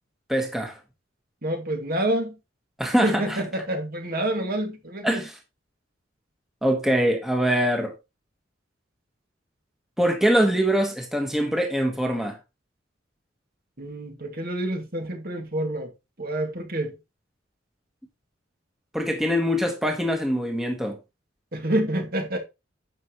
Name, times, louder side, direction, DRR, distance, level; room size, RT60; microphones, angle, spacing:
voice 1, 0.3-0.8 2.8-3.4 5.0-5.4 6.6-7.9 10.0-12.4 18.9-21.0, equal, ahead, 1.5 m, -23 dB
voice 2, 1.4-2.3 3.0-5.2 13.8-15.9 16.2-16.9 21.5-22.4, right 1 dB, 50° right, 2.5 m, -27 dB
10.5 x 7.5 x 3.2 m
head